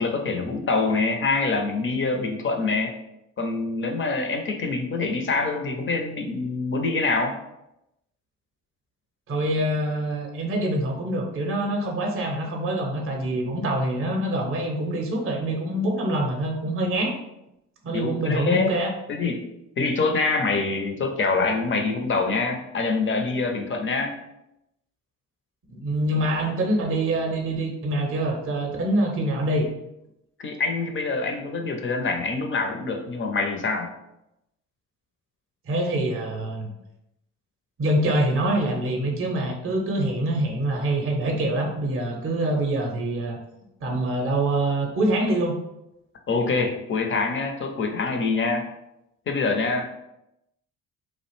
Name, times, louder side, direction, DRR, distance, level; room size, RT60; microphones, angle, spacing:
voice 1, 0.0-2.9 3.4-7.4 17.9-18.7 19.1-19.5 19.8-24.1 30.4-33.9 46.3-48.7 49.3-49.9, left 3 dB, 35° left, 4 dB, 0.5 m, -25 dB
voice 2, 9.3-17.2 17.8-18.9 25.7-29.7 35.7-36.7 37.8-43.4 43.8-45.6, right 1 dB, 35° right, 1 dB, 0.6 m, -25 dB
2.4 x 2.0 x 3.0 m, 0.86 s
hypercardioid pair, 50°, 38 cm